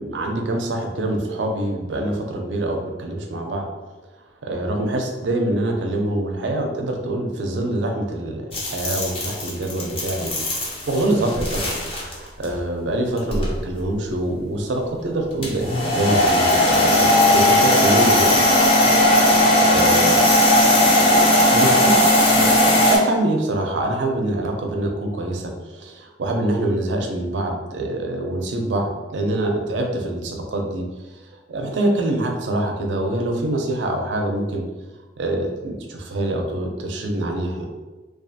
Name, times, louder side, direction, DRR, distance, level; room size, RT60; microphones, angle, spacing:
voice 1, 0.0-3.7 4.4-10.3 10.9-15.7 15.9-18.3 19.1-20.4 21.5-22.5 22.8-30.9 31.5-34.6 35.2-37.7, right 1 dB, 85° right, 2 dB, 0.5 m, -25 dB
sound 1, 8.5-12.1 12.4-12.6 13.2-13.6 15.4-23.0, left 1 dB, 30° left, 0.5 m, -17 dB
2.4 x 2.3 x 2.6 m, 1.2 s
head